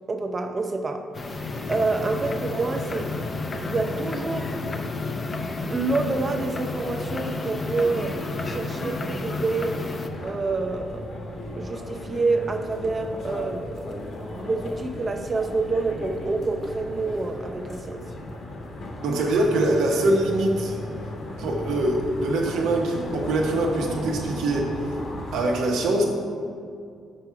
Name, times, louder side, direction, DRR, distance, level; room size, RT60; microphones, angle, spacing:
voice 1, 0.1-1.4 1.7-3.1 3.7-4.5 5.7-8.2 8.4-9.8 10.2-11.2 11.6-14.0 14.4-18.0, right 3 dB, 35° right, 5 dB, 0.7 m, -27 dB
sound 1, 1.1-10.1, left 3 dB, 35° left, 0.6 m, -31 dB
sound 2, 10.1-25.5, left 1 dB, 60° left, 1.5 m, -36 dB
voice 2, 19.0-20.8 21.4-24.7 25.3-26.0, right 1 dB, 85° right, 0 dB, 1.1 m, -23 dB
6.3 x 4.7 x 5.8 m, 2.3 s
cardioid pair, 90°, 0 cm